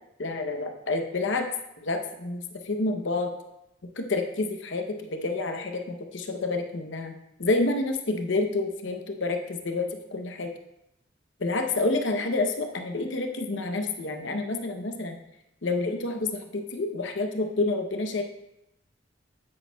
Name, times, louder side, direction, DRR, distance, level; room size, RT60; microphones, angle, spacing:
voice 1, 0.2-1.5 1.8-3.3 4.0-10.5 11.4-15.2 15.6-16.3 16.5-18.2, left 2 dB, 75° left, 5 dB, 0.8 m, -28 dB
8.6 x 8.5 x 2.3 m, 0.87 s
head